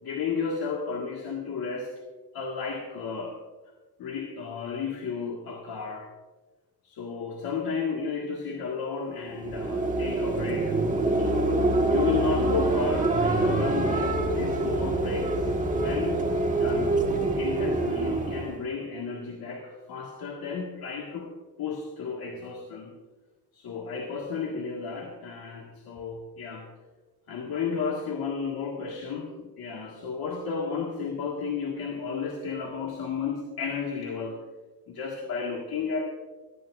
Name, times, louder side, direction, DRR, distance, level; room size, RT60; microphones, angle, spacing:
voice 1, 0.0-1.9 2.3-3.4 4.0-6.1 6.8-10.8 11.1-11.4 11.9-16.3 16.6-17.0 17.4-21.3 21.6-23.0 23.5-26.7 27.3-34.5 34.9-36.1, left 5 dB, 70° left, 0 dB, 1.8 m, -33 dB
sound 1, 9.3-18.6, right 2 dB, 20° right, 1.5 m, -25 dB
18.0 x 14.0 x 2.5 m, 1.3 s
cardioid pair, 150°, 38 cm